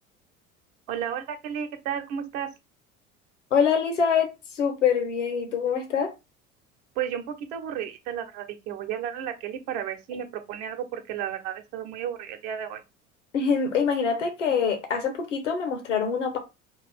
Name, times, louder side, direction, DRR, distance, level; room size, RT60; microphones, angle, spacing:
voice 1, 0.9-2.5 7.0-12.8, right 9 dB, 60° right, 1.0 m, -33 dB
voice 2, 3.5-6.1 13.3-16.4, left 6 dB, 80° left, 1.0 m, -25 dB
5.8 x 2.5 x 3.4 m
figure-of-eight pair, 60°, 37 cm